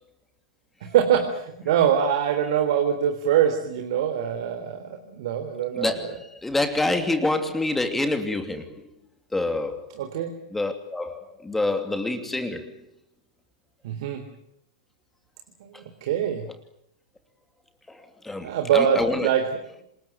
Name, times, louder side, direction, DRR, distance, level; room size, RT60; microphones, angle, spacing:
voice 1, 0.8-6.1 10.0-10.3 13.8-14.2 15.6-16.5 18.4-19.5, right 9 dB, 60° right, 5 dB, 3.6 m, -24 dB
voice 2, 5.8-8.7 9.3-9.9 10.5-12.7 17.9-18.0 18.2-19.3, left 2 dB, 5° left, 7 dB, 2.8 m, -27 dB
27.5 x 21.0 x 9.3 m, 0.74 s
hypercardioid pair, 110°, 3 cm